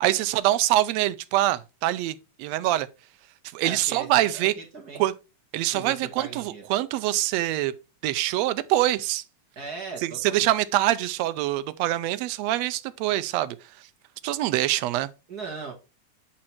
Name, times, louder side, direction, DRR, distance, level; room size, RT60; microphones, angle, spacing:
voice 1, 0.0-2.9 3.5-4.5 5.0-5.1 5.5-7.7 8.0-9.2 10.0-13.6 14.2-15.1, right 15 dB, 75° right, 1.7 m, -24 dB
voice 2, 3.6-5.0 5.7-6.7 9.5-10.5 15.3-15.7, right 4 dB, 40° right, 1.6 m, -38 dB
8.7 x 4.3 x 4.3 m
omnidirectional pair, 3.4 m